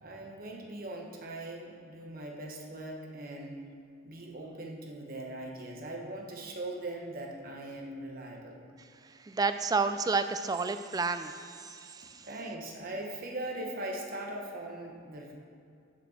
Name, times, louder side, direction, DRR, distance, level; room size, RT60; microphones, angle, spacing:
voice 1, 0.0-3.6 4.0-8.6 12.2-15.3, right 1 dB, 45° right, 0 dB, 1.2 m, -40 dB
voice 2, 9.2-12.3, right 4 dB, 20° right, 9 dB, 0.3 m, -31 dB
6.7 x 6.1 x 6.4 m, 2.5 s
head